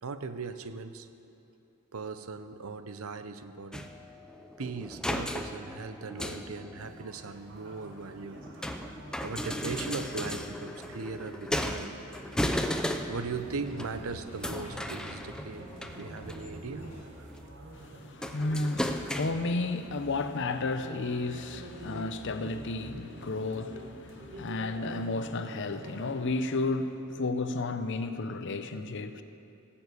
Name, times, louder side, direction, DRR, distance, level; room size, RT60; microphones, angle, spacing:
voice 1, 0.0-1.1 1.9-3.9 4.6-8.5 9.2-12.0 13.1-15.7 15.9-17.3, right 4 dB, 75° right, 0.7 m, -39 dB
sound 1, 3.7-7.0 7.8-13.3 13.7-14.0 14.4-16.7 17.0-17.5 18.2-19.7 20.6-20.7 21.5-21.6 21.9-22.0, equal, 5° left, 0.5 m, -36 dB
sound 2, 6.8-26.1, right 1 dB, 60° right, 1.8 m, -48 dB
sound 3, 12.2-17.2, equal, 30° left, 3.4 m, -47 dB
voice 2, 17.7-29.2, left 3 dB, 60° left, 0.7 m, -32 dB
17.0 x 7.1 x 8.2 m
head